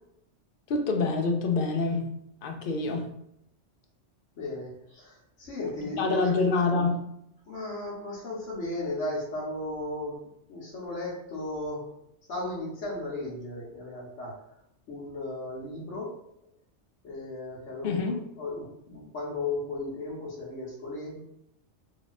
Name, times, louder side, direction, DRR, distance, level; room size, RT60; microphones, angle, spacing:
voice 1, 0.7-2.2 2.4-3.2 6.0-7.0 17.8-18.2, left 3 dB, 60° left, 5 dB, 0.6 m, -26 dB
voice 2, 4.4-6.3 7.4-10.2 10.5-11.9 12.3-14.3 14.9-16.2 17.0-21.2, left 2 dB, 85° left, -5 dB, 1.2 m, -35 dB
2.9 x 2.3 x 4.0 m, 0.78 s
omnidirectional pair, 1.2 m